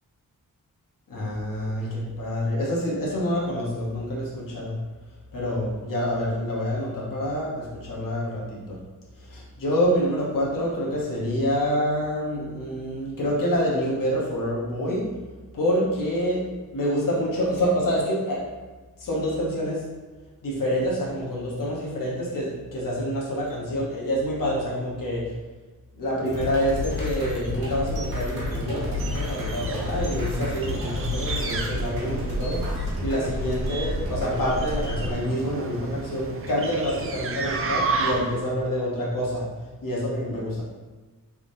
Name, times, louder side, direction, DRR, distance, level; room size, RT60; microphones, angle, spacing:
voice 1, 1.1-4.8 5.3-8.8 9.2-15.0 15.5-16.4 16.7-18.4 19.0-19.8 20.4-25.3 25.9-39.4 39.8-40.6, equal, 65° left, -5 dB, 1.0 m, -27 dB
sound 1, 26.3-35.1, left 1 dB, 85° right, 1.4 m, -30 dB
sound 2, 28.6-38.5, right 4 dB, 40° right, 0.4 m, -33 dB
3.5 x 3.4 x 2.6 m, 1.3 s
wide cardioid pair, 100°, 35 cm